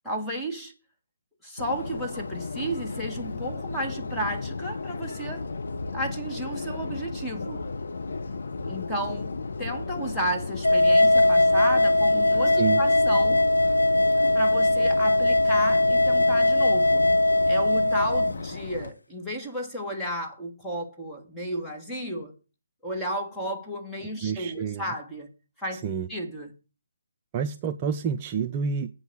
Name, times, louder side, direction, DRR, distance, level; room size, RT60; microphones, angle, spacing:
voice 1, 0.0-0.7 1.4-5.5 5.9-7.6 8.7-13.4 14.3-17.1 17.5-22.4 22.8-25.3 25.6-25.8 26.1-26.5, equal, ahead, 1.5 m, -33 dB
Subway metro underground, 1.6-18.9, left 3 dB, 55° left, 1.1 m, -34 dB
sound 1, 10.6-18.3, left 1 dB, 80° left, 0.5 m, -20 dB
voice 2, 24.2-24.8 25.7-26.1 27.3-28.9, right 6 dB, 25° right, 0.5 m, -28 dB
8.1 x 5.4 x 7.7 m
figure-of-eight pair, 145°, 0 cm